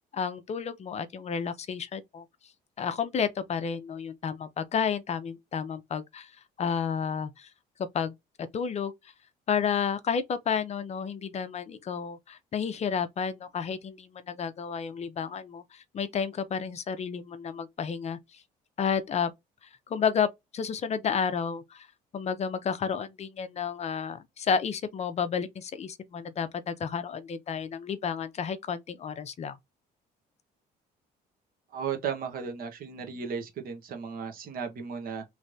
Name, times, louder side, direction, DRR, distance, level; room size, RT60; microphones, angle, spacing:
voice 1, 0.0-2.2 2.8-6.3 6.6-7.5 7.8-8.1 8.5-8.9 9.5-18.4 18.8-19.3 19.9-21.9 22.1-29.6, left 6 dB, 40° left, 0.6 m, -31 dB
voice 2, 31.7-35.2, right 6 dB, 60° right, 1.2 m, -35 dB
3.2 x 3.2 x 2.6 m
cardioid pair, 110°, 17 cm